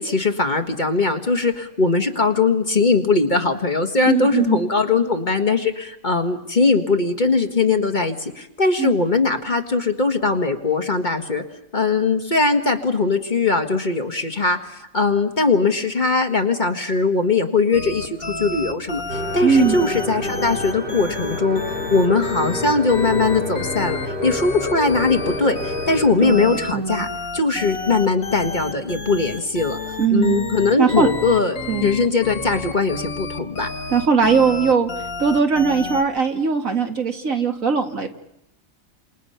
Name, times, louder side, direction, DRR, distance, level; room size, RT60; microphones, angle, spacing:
voice 1, 0.0-11.4 11.7-27.1 27.3-29.8 30.1-33.7, left 3 dB, 35° left, 5 dB, 1.8 m, -20 dB
voice 2, 4.1-4.6 8.8-8.9 19.4-19.8 26.2-27.1 30.0-30.5 30.8-31.1 31.7-31.9 33.9-34.9 35.2-38.1, right 5 dB, 70° right, 4 dB, 2.3 m, -19 dB
sound 1, 17.7-36.0, left 3 dB, 80° left, 2.6 m, -31 dB
sound 2, 19.1-26.1, left 1 dB, 45° right, 4.6 m, -29 dB
29.5 x 27.5 x 5.7 m, 0.80 s
omnidirectional pair, 1.5 m